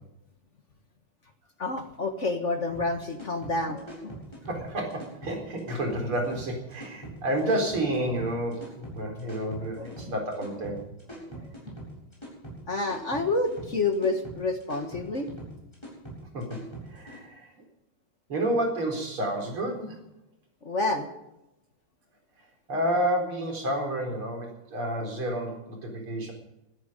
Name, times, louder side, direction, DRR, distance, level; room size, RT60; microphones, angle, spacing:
voice 1, 1.6-4.2 9.7-10.1 11.3-11.4 12.7-15.3 20.6-21.1, left 3 dB, 40° left, 7 dB, 1.5 m, -29 dB
sound 1, 2.7-17.2, right 1 dB, 10° left, 7.4 m, -43 dB
voice 2, 4.5-10.8 16.3-16.6 16.9-17.5 18.3-20.0 22.7-26.3, right 1 dB, 80° right, 2 dB, 5.1 m, -30 dB
19.5 x 14.0 x 5.2 m, 0.91 s
omnidirectional pair, 2.3 m